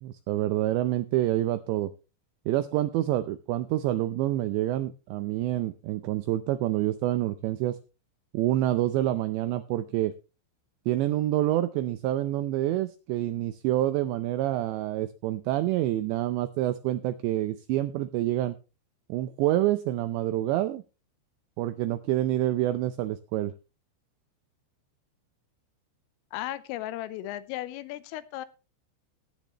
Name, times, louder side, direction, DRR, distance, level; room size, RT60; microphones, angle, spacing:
voice 1, 0.0-1.9 2.5-7.8 8.3-10.1 10.9-18.6 19.1-20.8 21.6-23.5, right 14 dB, 85° right, 12 dB, 2.5 m, -27 dB
voice 2, 26.3-28.5, left 14 dB, 85° left, 15 dB, 3.4 m, -35 dB
18.5 x 9.3 x 3.0 m, 0.30 s
omnidirectional pair, 5.8 m